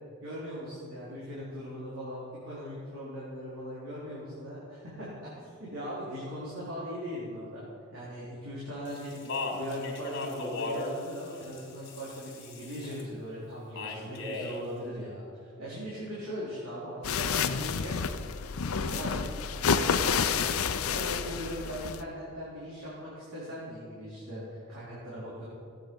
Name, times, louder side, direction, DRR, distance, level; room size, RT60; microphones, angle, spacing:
voice 1, 0.2-5.1 5.3-7.6 7.9-18.0 18.7-25.5, equal, 75° right, -9 dB, 3.9 m, -40 dB
Speech, 8.8-13.0 13.7-14.6, left 2 dB, 55° left, 2.6 m, -37 dB
sound 1, 17.0-22.0, left 6 dB, 85° left, 0.6 m, -29 dB
16.5 x 9.1 x 5.4 m, 2.5 s
head